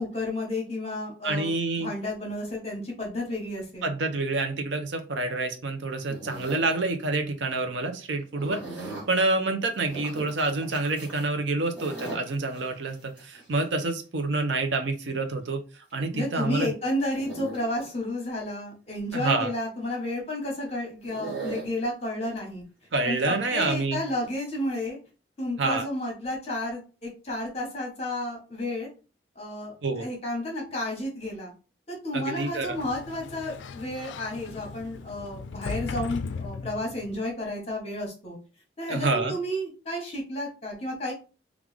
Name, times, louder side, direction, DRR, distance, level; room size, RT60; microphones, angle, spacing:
voice 1, 0.0-3.9 16.1-22.6 23.0-25.0 25.4-28.9 29.3-31.5 31.9-38.4 38.8-41.1, left 1 dB, 35° left, -1 dB, 1.3 m, -32 dB
voice 2, 1.2-1.9 3.8-15.6 15.9-16.7 19.1-19.5 22.9-24.0 25.6-25.9 29.8-30.1 32.1-32.8 38.9-39.3, right 3 dB, 80° right, 7 dB, 0.6 m, -28 dB
sound 1, 6.1-6.7 8.4-9.1 9.8-11.3 11.7-13.6 15.9-16.0 17.2-17.9 21.0-21.7 23.0-23.2 24.2-24.3, right 3 dB, 5° right, 1.6 m, -38 dB
Sliding door, 32.5-37.2, left 4 dB, 85° left, 0.3 m, -38 dB
3.5 x 2.4 x 3.4 m, 0.35 s
head